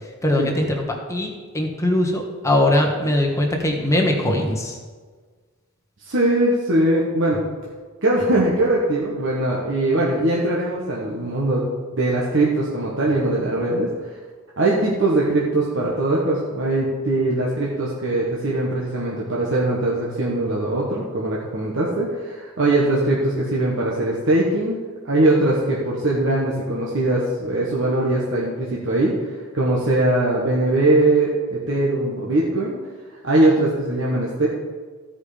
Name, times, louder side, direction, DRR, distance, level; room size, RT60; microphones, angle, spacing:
voice 1, 0.2-4.8, left 1 dB, 15° left, 0 dB, 1.4 m, -21 dB
voice 2, 6.0-7.4 8.0-11.6 11.9-13.9 14.6-24.8 25.0-29.1 29.5-32.7 33.2-34.5, right 2 dB, 55° right, -5 dB, 1.4 m, -21 dB
15.5 x 5.2 x 5.0 m, 1.5 s
head